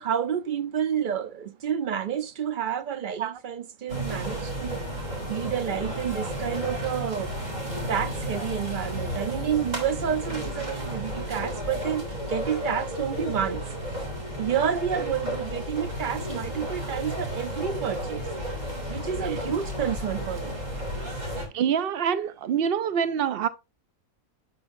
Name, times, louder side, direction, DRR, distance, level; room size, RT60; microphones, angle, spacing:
voice 1, 0.0-4.8 5.3-7.3 7.9-12.0 12.3-13.6 14.4-18.2 18.9-20.5, right 8 dB, 45° right, 0.7 m, -29 dB
sound 1, 3.9-21.5, equal, 30° right, 3.2 m, -33 dB
voice 2, 21.5-23.5, right 8 dB, 85° right, 0.5 m, -26 dB
11.5 x 4.4 x 2.6 m
omnidirectional pair, 1.5 m